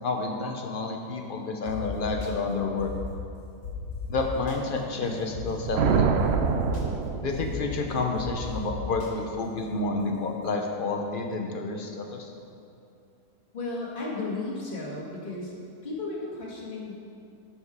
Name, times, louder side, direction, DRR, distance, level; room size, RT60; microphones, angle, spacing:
voice 1, 0.0-2.9 4.1-6.1 7.2-12.3, left 3 dB, 50° left, 2 dB, 0.6 m, -30 dB
sound 1, 1.6-2.3 2.8-3.2 3.6-4.6 5.3-5.4 5.7-5.8 6.2-6.8 7.3-7.7 8.2-9.1, left 3 dB, 90° left, 1.9 m, -37 dB
sound 2, 5.3-7.8, right 5 dB, 80° right, 0.5 m, -26 dB
voice 2, 13.5-15.5 15.8-16.9, left 3 dB, 30° left, -4 dB, 1.7 m, -34 dB
11.0 x 4.8 x 4.8 m, 2.6 s
omnidirectional pair, 1.7 m